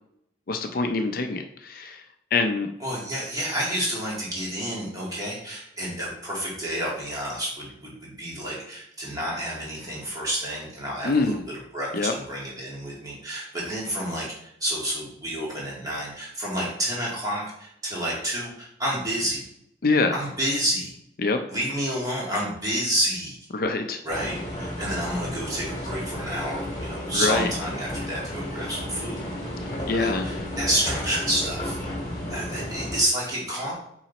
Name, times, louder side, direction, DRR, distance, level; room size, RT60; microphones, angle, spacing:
voice 1, 0.5-2.1 2.3-2.7 11.0-11.4 11.9-12.1 19.8-20.2 21.2-21.4 23.5-24.0 27.1-27.5 29.7-30.3, left 3 dB, 55° left, 6 dB, 0.5 m, -25 dB
voice 2, 2.8-11.4 11.7-19.4 20.1-20.9 21.5-23.4 24.0-29.3 29.9-31.8 32.3-33.7, equal, 20° right, -5 dB, 2.2 m, -29 dB
sound 1, 24.1-33.0, left 1 dB, 25° left, 2.0 m, -33 dB
6.1 x 3.9 x 4.1 m, 0.76 s
head